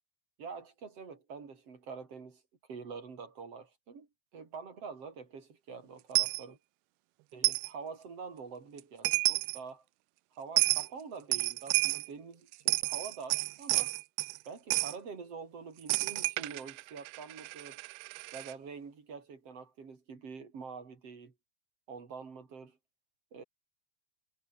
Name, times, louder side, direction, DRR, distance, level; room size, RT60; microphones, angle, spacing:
voice 1, 0.4-2.4 2.7-4.1 4.3-6.6 7.3-9.8 10.4-14.0 14.5-17.8 18.3-21.3 21.9-22.8 23.3-23.4, right 5 dB, 35° right, 4.1 m, -46 dB
Coin (dropping), 6.1-6.4 7.4-7.7 8.8-8.9 9.0-9.6 10.6-10.9 11.3-12.1 12.5-14.4 14.7-14.9 15.9-18.5, right 24 dB, 85° right, 2.3 m, -30 dB
omnidirectional pair, 4.9 m